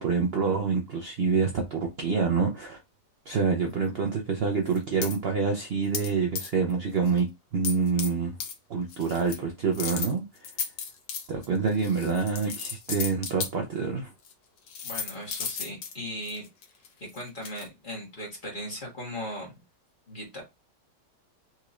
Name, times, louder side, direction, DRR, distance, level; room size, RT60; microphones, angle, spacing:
voice 1, 0.0-2.8 3.3-7.3 7.5-8.4 8.7-10.5 11.3-14.1, right 5 dB, 80° right, 0.5 m, -27 dB
sound 1, 4.7-5.2 5.9-6.1 6.3-6.7 7.1-7.2 7.6-8.1 8.4-8.5 8.9-9.4 9.7-13.5 14.2-14.3 14.7-17.7, left 6 dB, 55° left, 1.0 m, -34 dB
voice 2, 14.8-16.5 17.0-19.5 20.1-20.4, equal, 30° left, 1.6 m, -38 dB
4.1 x 2.9 x 2.4 m
omnidirectional pair, 1.9 m